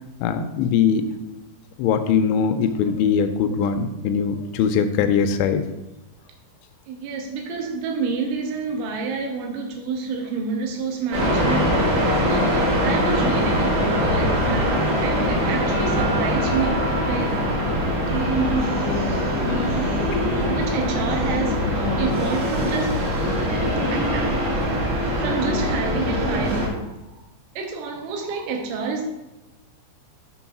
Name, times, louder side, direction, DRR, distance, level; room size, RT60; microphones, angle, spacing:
voice 1, 0.2-1.0 1.8-5.6, left 7 dB, 85° left, 8 dB, 2.5 m, -21 dB
voice 2, 6.9-16.7 17.0-17.4 20.3-24.9 25.2-27.2 27.6-29.1, right 4 dB, 80° right, 2 dB, 3.1 m, -29 dB
sound 1, 11.1-26.7, equal, 50° right, 2.2 m, -22 dB
7.1 x 3.8 x 5.9 m, 1.0 s
omnidirectional pair, 5.6 m